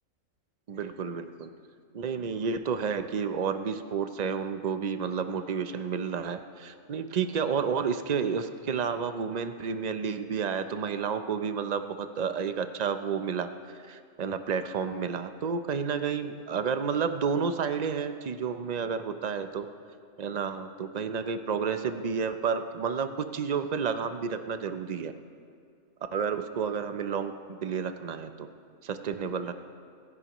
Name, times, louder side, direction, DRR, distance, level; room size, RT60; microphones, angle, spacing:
voice 1, 0.7-1.5 1.9-19.7 20.2-25.1 26.1-27.3 27.6-28.5 28.8-29.5, right 6 dB, 60° right, 9 dB, 0.4 m, -31 dB
26.0 x 11.0 x 3.0 m, 2.3 s
omnidirectional pair, 1.5 m